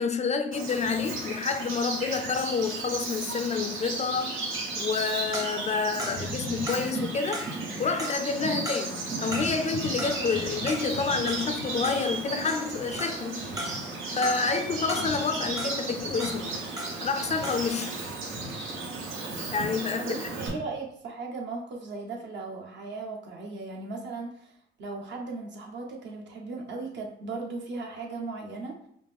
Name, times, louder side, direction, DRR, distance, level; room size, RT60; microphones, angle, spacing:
voice 1, 0.0-4.4 4.7-7.5 7.8-13.5 14.2-16.5 17.0-17.9 19.5-20.1, left 5 dB, 35° left, 0.4 m, -28 dB
Bird vocalization bird call bird song, 0.5-20.5, right 3 dB, 90° right, 1.0 m, -34 dB
sound 1, 5.3-17.2 17.4-17.8, equal, 20° right, 0.7 m, -39 dB
voice 2, 20.0-28.8, right 3 dB, 65° right, 1.0 m, -37 dB
5.1 x 2.0 x 3.4 m
cardioid pair, 90°, 20 cm